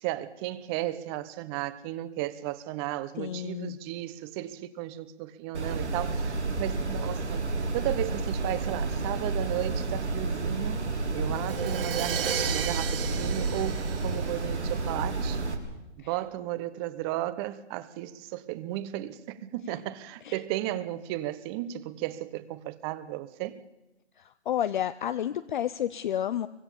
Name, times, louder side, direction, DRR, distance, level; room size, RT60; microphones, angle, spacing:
voice 1, 0.0-7.4 7.7-10.8 11.1-15.4 16.0-23.6, right 14 dB, 20° right, 1.1 m, -34 dB
voice 2, 3.2-3.8 20.2-20.4 24.5-26.5, left 10 dB, 45° left, 0.8 m, -30 dB
sound 1, 5.5-15.5, right 3 dB, 90° right, 4.3 m, -30 dB
Crash cymbal, 11.3-15.1, right 8 dB, 55° right, 1.5 m, -34 dB
24.5 x 21.5 x 7.1 m
hypercardioid pair, 140°, 33 cm